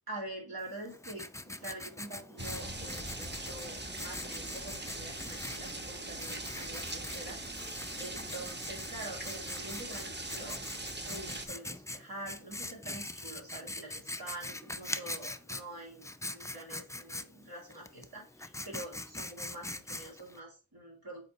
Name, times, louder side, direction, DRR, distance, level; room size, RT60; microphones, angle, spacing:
voice 1, 0.1-10.6 11.1-21.3, right 1 dB, 85° right, -2 dB, 2.6 m, -46 dB
Writing, 0.6-20.4, left 2 dB, 10° left, 0.4 m, -43 dB
sound 1, 2.4-11.5, right 2 dB, 30° right, 0.9 m, -41 dB
7.8 x 4.2 x 2.9 m, 0.33 s
wide cardioid pair, 50°, 36 cm